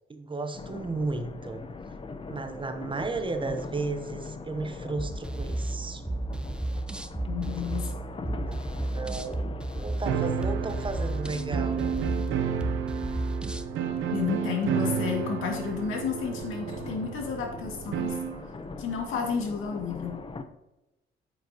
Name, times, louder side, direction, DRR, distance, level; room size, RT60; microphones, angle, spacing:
voice 1, 0.1-1.6 2.3-6.0 8.4-8.6 8.9-9.4 9.7-11.9, right 3 dB, 25° right, 7 dB, 0.9 m, -34 dB
sound 1, 0.5-20.4, left 3 dB, 25° left, 0.8 m, -42 dB
sound 2, 5.0-13.7, right 2 dB, 5° right, 0.5 m, -33 dB
voice 2, 7.3-8.0 14.1-18.2 18.8-20.2, left 6 dB, 85° left, 1 dB, 2.2 m, -31 dB
sound 3, 10.0-18.4, right 7 dB, 85° right, 0.8 m, -31 dB
9.2 x 8.3 x 2.9 m, 0.95 s
cardioid pair, 90°, 20 cm